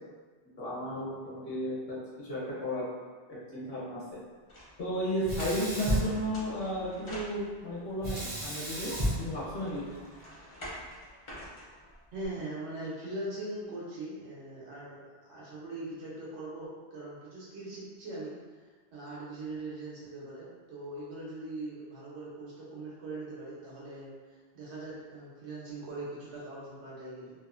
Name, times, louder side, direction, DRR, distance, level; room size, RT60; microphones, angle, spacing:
voice 1, 0.6-2.8 3.5-4.0 4.8-8.9 9.2-10.0, equal, 65° left, -7 dB, 1.0 m, -34 dB
sound 1, 4.5-7.8 8.3-12.3, equal, 40° left, 0.5 m, -48 dB
Sink (filling or washing), 5.2-6.9 8.0-10.3, equal, 40° right, 0.5 m, -34 dB
voice 2, 12.1-15.0 15.2-18.3 18.9-24.1 24.5-27.3, right 2 dB, 85° right, -7 dB, 1.1 m, -41 dB
2.8 x 2.1 x 2.4 m, 1.5 s
omnidirectional pair, 1.1 m